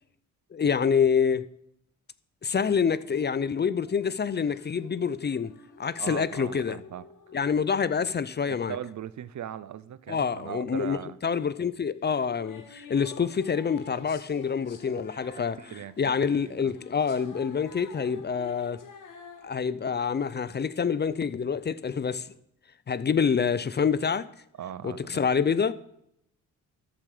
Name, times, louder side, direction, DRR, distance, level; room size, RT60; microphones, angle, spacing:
voice 1, 0.5-1.4 2.4-5.5 5.8-6.8 7.3-8.8 10.1-15.6 16.0-18.8 19.4-22.3 22.9-24.3 24.8-25.7, left 6 dB, 30° left, 0.5 m, -27 dB
sound 1, 2.5-9.6 12.0-19.5, left 5 dB, 65° left, 1.9 m, -50 dB
voice 2, 5.9-7.1 8.5-11.2 15.6-16.0 16.4-16.7 24.6-25.3, right 10 dB, 60° right, 0.6 m, -39 dB
13.5 x 7.4 x 4.9 m
cardioid pair, 100°, 33 cm